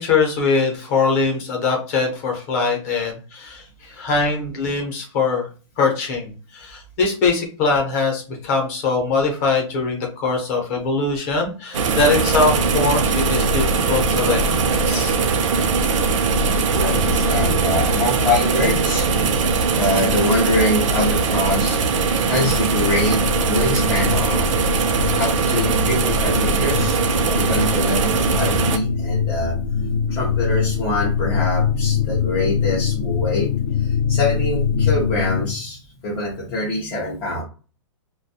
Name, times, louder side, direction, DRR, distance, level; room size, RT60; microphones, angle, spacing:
voice 1, 0.0-5.5 5.8-15.1, left 4 dB, 30° left, 1 dB, 0.7 m, -22 dB
sound 1, 11.7-28.8, right 4 dB, 90° right, 0.5 m, -20 dB
voice 2, 16.7-19.4 19.7-24.5 25.2-27.0 27.4-29.6 30.1-37.4, left 1 dB, 10° left, -6 dB, 0.3 m, -24 dB
sound 2, 22.1-35.5, left 6 dB, 70° left, 0.5 m, -24 dB
2.3 x 2.2 x 2.6 m, 0.36 s
hypercardioid pair, 170°, 16 cm